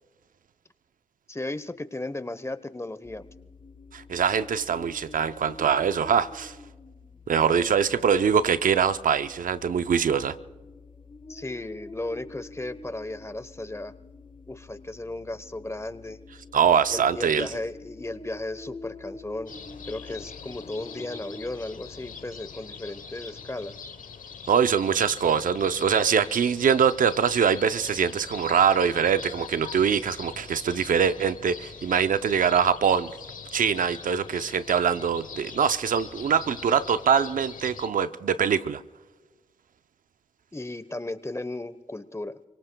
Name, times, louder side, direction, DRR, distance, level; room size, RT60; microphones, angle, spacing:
voice 1, 1.3-3.3 11.3-13.9 14.5-16.2 16.9-19.5 19.9-23.7 40.5-42.3, left 2 dB, 20° left, 1.0 m, -35 dB
sound 1, 3.0-21.4, left 3 dB, 40° left, 5.2 m, -47 dB
voice 2, 3.9-6.6 7.3-10.3 16.5-17.5 24.5-33.1 33.5-38.8, right 7 dB, 80° right, 0.6 m, -23 dB
sound 2, 19.5-37.9, left 6 dB, 75° left, 1.0 m, -43 dB
30.0 x 18.0 x 2.3 m
cardioid pair, 45°, 14 cm